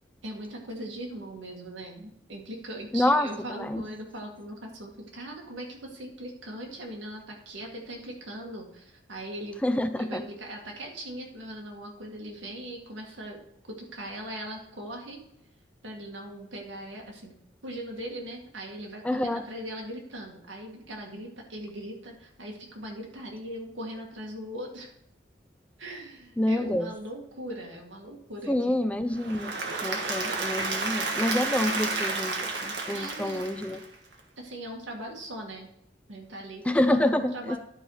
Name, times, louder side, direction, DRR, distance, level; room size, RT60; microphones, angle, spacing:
voice 1, 0.2-9.6 10.0-13.4 13.7-15.2 15.8-17.4 17.6-24.9 25.8-28.8 32.9-33.4 34.4-35.7 36.1-37.6, right 1 dB, 90° right, 0 dB, 2.2 m, -40 dB
voice 2, 2.9-3.3 3.6-3.8 9.6-10.3 19.0-19.4 26.4-26.9 28.5-29.5 29.8-32.4 32.6-33.8 36.6-37.6, left 1 dB, 5° left, 9 dB, 0.4 m, -27 dB
Applause / Crowd, 29.1-34.1, right 3 dB, 65° right, 1.4 m, -31 dB
11.5 x 4.9 x 4.9 m, 0.76 s
head